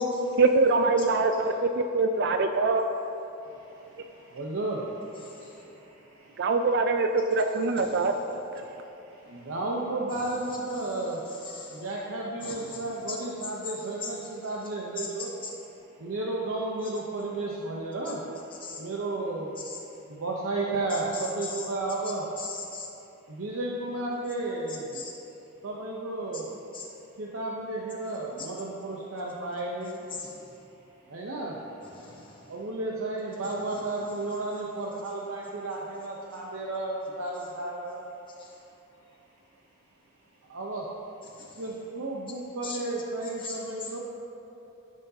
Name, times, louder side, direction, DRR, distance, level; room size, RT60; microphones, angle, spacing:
voice 1, 0.4-2.8 6.4-8.1, right 3 dB, 55° right, 6 dB, 0.4 m, -23 dB
voice 2, 3.4-6.6 8.6-11.2 11.7-15.4 16.0-18.2 18.7-19.6 20.1-22.3 23.3-25.0 25.6-26.5 27.2-30.1 31.1-31.6 32.5-38.0 40.4-40.9 41.6-44.0, right 2 dB, 80° right, -3 dB, 0.8 m, -33 dB
voice 3, 7.8-8.2 10.1-10.2 10.7-11.0 11.4-11.8 12.4-12.8 13.1-13.2 14.0-14.1 15.0-15.1 18.6-18.8 19.6-19.8 21.4-21.6 22.4-22.9 24.9-25.1 26.7-26.8 30.1-30.3 31.9-32.4 33.7-33.8 38.4-38.5 41.4-41.6 42.6-42.8 43.4-43.9, left 4 dB, 25° left, -4 dB, 1.4 m, -39 dB
14.0 x 6.3 x 2.8 m, 2.9 s
head